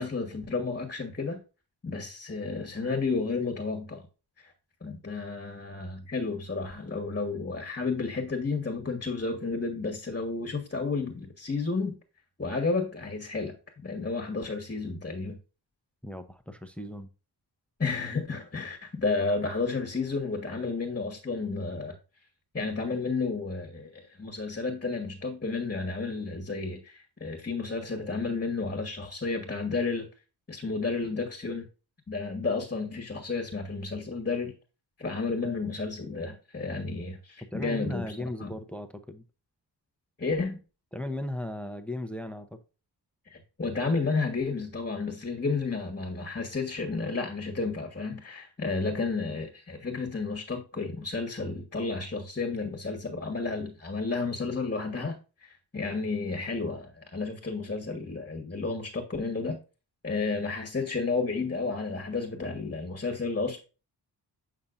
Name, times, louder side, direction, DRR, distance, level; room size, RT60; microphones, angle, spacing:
voice 1, 0.0-1.4 1.8-4.0 4.4-4.5 4.8-11.9 12.4-13.5 13.8-15.4 17.8-21.9 22.5-30.1 30.5-31.6 32.1-34.5 35.0-38.5 40.2-40.6 43.3-59.6 60.0-63.6, left 4 dB, 25° left, 1.4 m, -32 dB
voice 2, 16.0-17.1 37.5-39.2 40.9-42.6, left 1 dB, 5° left, 0.7 m, -36 dB
8.4 x 5.6 x 2.6 m
wide cardioid pair, 100°, 41 cm